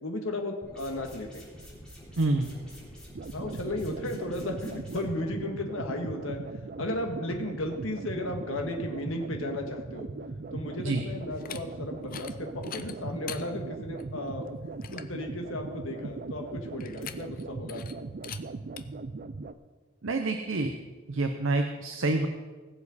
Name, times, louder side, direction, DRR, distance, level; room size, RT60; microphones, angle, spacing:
voice 1, 0.0-1.4 3.3-6.4 6.8-10.1 10.5-14.5 14.9-17.8, left 1 dB, 75° left, 3 dB, 1.6 m, -35 dB
sound 1, 0.6-5.0, equal, 5° left, 3.8 m, -48 dB
voice 2, 2.2-2.5 10.8-11.0 20.0-20.7 21.1-22.3, right 2 dB, 70° right, 5 dB, 0.8 m, -27 dB
sound 2, 3.1-19.5, right 3 dB, 45° right, 0.5 m, -39 dB
sound 3, 11.3-11.6 12.0-12.3 12.6-13.4 14.0-14.1 14.5-14.6 14.8-15.1 16.8-17.4 17.7-17.9 18.2-18.4 18.8-18.9, left 9 dB, 45° left, 0.6 m, -41 dB
20.5 x 7.3 x 4.2 m, 1.4 s
head